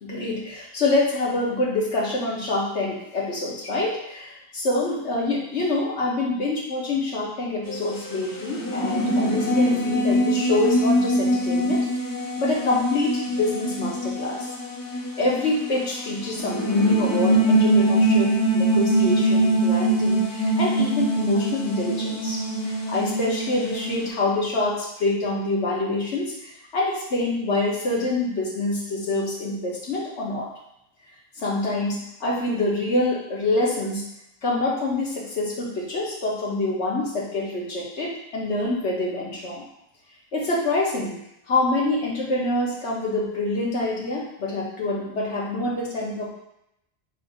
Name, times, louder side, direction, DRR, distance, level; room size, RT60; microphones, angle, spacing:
voice 1, 0.0-11.8 12.4-14.5 15.2-30.5 31.4-34.0 34.4-39.6 40.3-41.2 41.5-46.3, left 2 dB, 75° left, -3 dB, 1.4 m, -26 dB
sound 1, 7.7-24.1, right 1 dB, 30° left, 0.4 m, -23 dB
4.0 x 2.6 x 4.8 m, 0.81 s
omnidirectional pair, 1.2 m